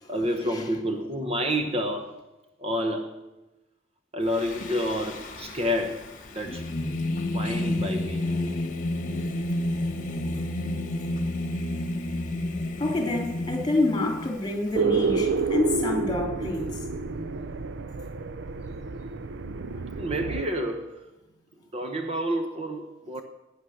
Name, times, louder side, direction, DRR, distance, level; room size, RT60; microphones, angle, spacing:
voice 1, 0.1-2.2 2.6-3.2 4.1-6.1 6.3-6.6 7.3-8.2 20.0-21.0 21.7-23.2, equal, 30° right, 1.0 m, -29 dB
Singing, 4.3-14.7, left 1 dB, 40° left, 1.3 m, -31 dB
voice 2, 12.8-16.7, left 2 dB, 20° left, 3.0 m, -27 dB
sound 1, 14.8-20.4, right 4 dB, 60° right, 0.6 m, -29 dB
18.0 x 9.8 x 6.4 m
head